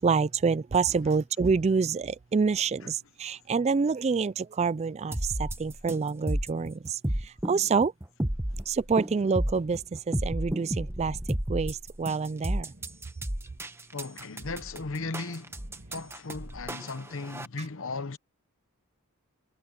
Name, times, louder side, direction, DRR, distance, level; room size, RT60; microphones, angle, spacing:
voice 1, 0.0-7.0 7.4-7.9 8.7-11.2 11.5-12.7, right 5 dB, 30° right, 0.3 m, -27 dB
sound 1, 5.1-17.5, right 1 dB, 10° right, 1.0 m, -32 dB
sound 2, 9.1-10.7 12.1-13.8 15.4-16.9, right 1 dB, 50° right, 2.5 m, -55 dB
voice 2, 13.9-15.6 15.9-18.2, left 3 dB, 60° left, 0.9 m, -36 dB
head